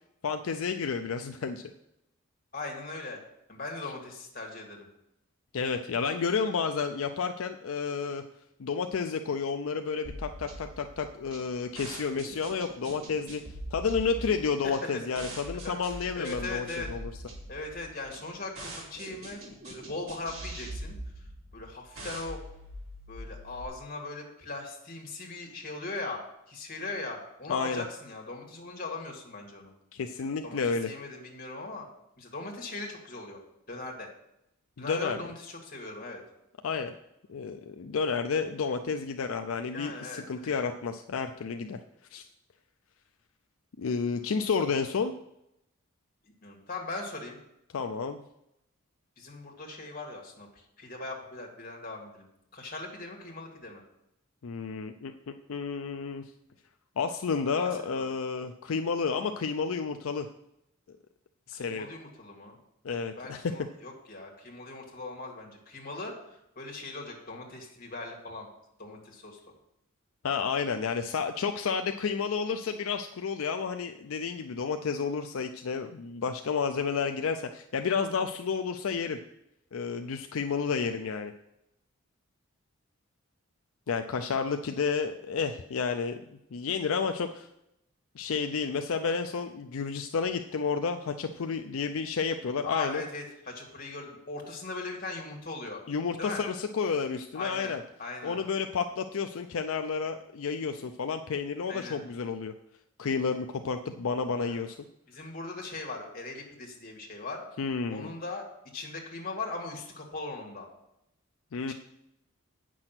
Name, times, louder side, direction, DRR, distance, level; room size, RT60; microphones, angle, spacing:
voice 1, 0.2-1.6 5.5-8.2 8.6-13.4 13.7-17.0 27.5-27.8 29.9-30.9 34.8-35.2 36.6-36.9 37.3-41.8 42.1-42.2 43.8-45.1 47.7-48.2 54.4-56.3 57.0-60.3 60.9-61.0 61.5-61.9 62.8-63.5 70.2-79.2 79.7-81.3 83.9-86.2 86.5-87.5 88.2-93.0 95.9-97.8 98.2-102.5 103.0-104.8 107.6-108.1 111.5-111.7, left 5 dB, 75° left, 6 dB, 0.5 m, -31 dB
voice 2, 2.5-3.2 3.5-4.9 14.6-15.0 15.6-16.9 17.5-21.3 21.5-22.4 23.1-26.2 26.5-29.7 30.4-31.9 32.2-33.4 33.7-34.1 34.8-36.2 39.7-40.5 46.2-47.4 49.2-53.8 57.6-58.1 61.5-62.6 63.2-68.5 68.8-69.4 92.6-95.8 96.2-96.4 97.3-98.4 101.7-102.0 104.4-104.6 105.1-107.4 107.9-108.4 108.7-110.7 111.7-111.8, left 3 dB, 40° left, 0 dB, 2.0 m, -39 dB
sound 1, 10.0-23.6, right 1 dB, 70° right, 3.8 m, -43 dB
8.8 x 6.2 x 5.9 m, 0.83 s
head